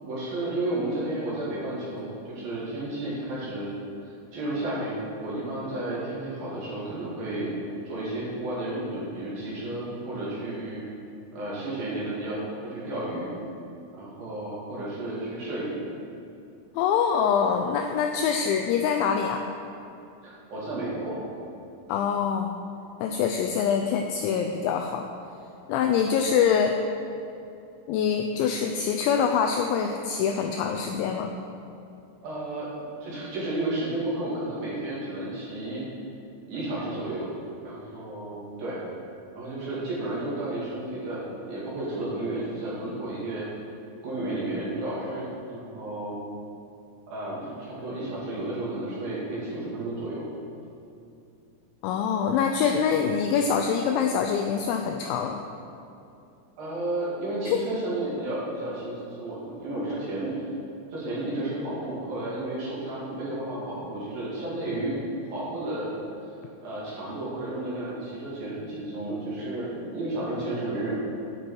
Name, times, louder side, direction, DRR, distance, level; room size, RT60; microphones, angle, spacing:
voice 1, 0.0-3.7 4.0-7.5 7.8-10.8 11.3-13.3 13.9-15.8 20.2-21.2 32.2-32.7 33.0-35.8 36.5-37.3 37.6-38.8 39.4-43.5 44.0-46.2 47.1-50.3 56.6-60.4 60.9-65.0 65.3-65.9 66.6-71.0, right 1 dB, 55° right, -7 dB, 3.2 m, -32 dB
voice 2, 16.7-19.5 21.9-22.5 23.0-25.1 25.7-26.8 27.9-31.3 51.8-55.4 57.5-57.6, left 7 dB, 85° left, 3 dB, 2.6 m, -24 dB
9.7 x 9.2 x 4.6 m, 2.7 s
omnidirectional pair, 5.7 m